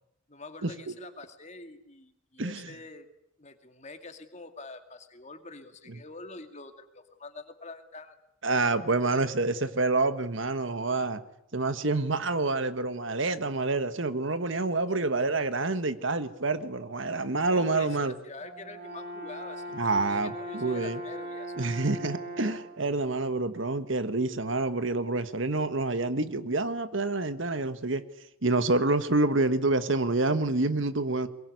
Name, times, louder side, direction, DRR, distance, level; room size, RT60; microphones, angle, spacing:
voice 1, 0.3-3.1 3.4-8.2 15.0-15.5 17.3-21.5, left 3 dB, 35° left, 2.4 m, -45 dB
voice 2, 2.4-2.7 8.4-11.2 11.5-18.1 19.7-21.0 21.6-28.0 28.4-31.3, right 3 dB, 65° right, 1.5 m, -27 dB
Brass instrument, 18.4-22.8, right 1 dB, 45° right, 4.7 m, -39 dB
22.5 x 22.5 x 9.6 m
head